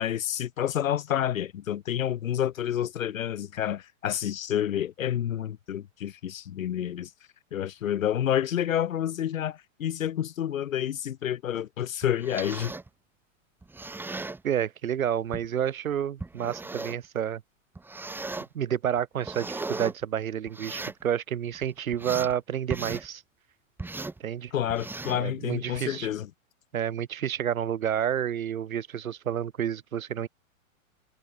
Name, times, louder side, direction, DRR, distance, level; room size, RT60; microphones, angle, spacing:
voice 1, 0.0-7.1 7.5-12.7 24.5-26.3, left 10 dB, 75° left, 6.2 m, -29 dB
sound 1, 12.0-12.9 13.6-14.4 15.3-15.5 16.2-17.0 17.7-18.5 19.0-19.9 20.5-21.0 21.5-22.3 22.7-23.1 23.8-24.2 24.7-25.2 25.7-26.0, right 3 dB, 5° right, 5.3 m, -37 dB
voice 2, 14.4-17.4 18.5-23.2 24.2-24.5 25.1-26.1 26.7-30.3, right 9 dB, 85° right, 4.3 m, -29 dB
hypercardioid pair, 155°, 40 cm